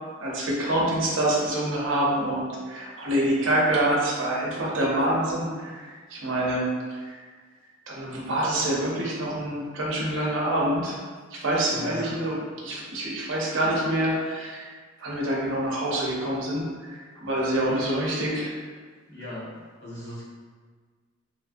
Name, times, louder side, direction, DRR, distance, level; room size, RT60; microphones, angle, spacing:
voice 1, 0.2-6.7 7.9-11.0 11.3-12.4 12.6-14.7 15.0-18.3, right 1 dB, 70° right, -4 dB, 0.7 m, -26 dB
voice 2, 11.7-12.3 17.7-18.1 19.1-19.5 19.8-20.3, equal, 65° left, -10 dB, 1.2 m, -38 dB
3.2 x 2.4 x 2.5 m, 1.5 s
head